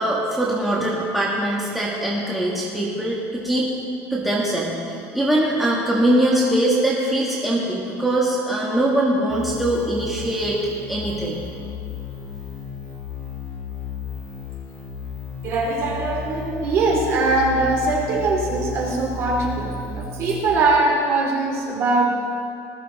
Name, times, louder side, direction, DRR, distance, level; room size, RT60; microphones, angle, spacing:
voice 1, 0.0-3.7 4.1-10.6 10.9-11.4, right 1 dB, ahead, -6 dB, 1.5 m, -22 dB
sound 1, 9.3-20.6, left 4 dB, 30° left, 3.5 m, -34 dB
voice 2, 15.4-22.1, right 3 dB, 40° right, -1 dB, 3.1 m, -21 dB
19.5 x 14.0 x 4.1 m, 2.6 s
cardioid pair, 170°, 7 cm